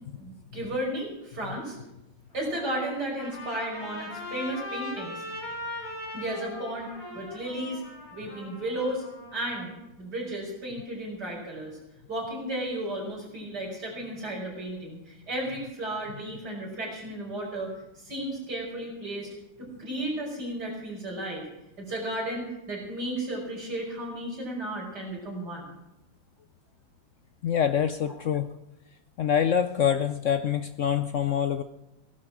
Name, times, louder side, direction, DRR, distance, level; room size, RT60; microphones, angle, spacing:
voice 1, 0.2-1.8 2.3-5.2 6.1-7.8 8.1-9.0 9.3-9.7 10.0-11.8 12.1-17.7 18.0-19.3 19.6-21.4 21.8-25.7, right 1 dB, 55° right, -2 dB, 6.3 m, -34 dB
Trumpet, 2.3-9.8, left 2 dB, 45° left, 6.1 m, -40 dB
voice 2, 27.4-28.5 29.2-31.6, left 8 dB, 75° left, 10 dB, 0.6 m, -25 dB
17.0 x 12.0 x 6.3 m, 0.91 s
omnidirectional pair, 2.1 m